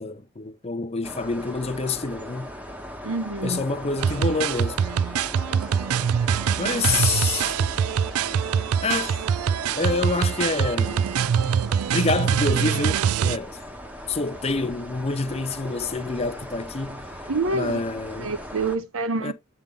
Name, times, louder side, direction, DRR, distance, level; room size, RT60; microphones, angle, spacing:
voice 1, 0.0-2.5 3.4-4.8 6.6-7.5 8.8-9.2 9.7-11.1 11.9-13.6 14.1-17.1 17.5-18.3 19.2-19.3, left 3 dB, 30° left, 0.7 m, -27 dB
sound 1, 1.0-18.8, equal, 5° right, 1.0 m, -39 dB
voice 2, 3.0-3.6 17.3-17.8 18.2-19.3, right 3 dB, 70° right, 0.8 m, -27 dB
sound 2, 4.0-13.4, right 7 dB, 90° right, 0.4 m, -24 dB
8.8 x 3.5 x 3.7 m
head